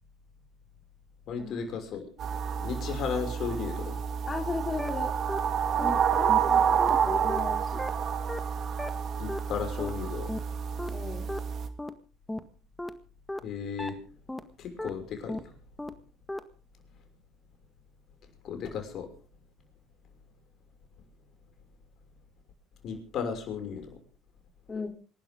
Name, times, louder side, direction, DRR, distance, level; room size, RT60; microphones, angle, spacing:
voice 1, 1.3-2.1 2.6-4.0 9.2-10.4 13.4-14.0 14.6-15.5 18.4-19.1 22.8-23.9, left 6 dB, 55° left, 5 dB, 6.1 m, -35 dB
sound 1, 2.2-11.7, right 7 dB, 50° right, 2.5 m, -29 dB
voice 2, 4.3-5.1 5.8-7.8 10.9-11.3 24.7-24.9, left 4 dB, 30° left, 4 dB, 3.2 m, -36 dB
sound 2, 4.4-4.5 4.8-4.9 5.3-5.4 5.8-5.9 6.3-6.4 6.8-6.9 7.3-7.4 7.8-7.9 8.3-8.4 8.8-8.9 9.3-9.4 9.8-9.9 10.3-10.4 10.8-10.9 11.3-11.4 11.8-11.9 12.3-12.4 12.8-12.9 13.3-13.4 13.8-13.9 14.3-14.4 14.8-14.9 15.3-15.4 15.8-15.9 16.3-16.4, left 1 dB, 10° left, 1.8 m, -34 dB
27.5 x 12.0 x 3.8 m, 0.39 s
hypercardioid pair, 70°, 0 cm